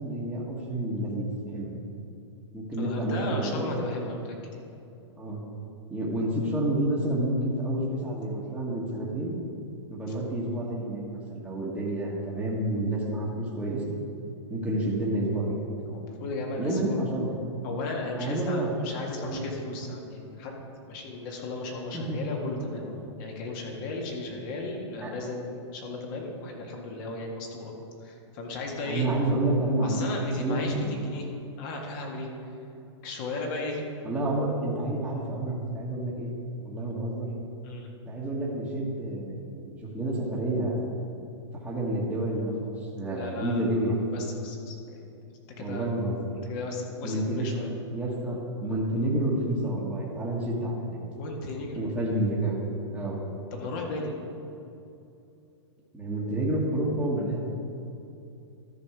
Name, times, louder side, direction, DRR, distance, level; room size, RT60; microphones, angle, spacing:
voice 1, 0.0-1.7 2.5-3.7 5.2-5.4 5.9-9.4 9.9-13.8 14.5-15.6 16.6-17.3 18.2-18.7 19.0-19.4 21.9-22.2 25.0-25.1 28.9-30.1 30.4-30.9 34.0-36.3 36.6-37.3 38.1-40.8 41.6-43.9 45.6-46.3 47.0-47.5 47.9-51.0 51.7-52.6 52.9-53.2 55.9-57.4, right 1 dB, 5° right, -7 dB, 1.5 m, -29 dB
voice 2, 2.8-4.6 15.9-17.0 17.6-20.6 20.9-27.7 28.0-29.1 29.8-31.3 31.6-32.3 33.0-33.8 37.6-37.9 43.1-43.6 44.1-45.1 45.6-45.9 46.5-47.7 51.1-51.8 53.5-54.1, left 2 dB, 45° left, 0 dB, 1.9 m, -35 dB
13.0 x 5.2 x 4.9 m, 2.7 s
hypercardioid pair, 135°, 15 cm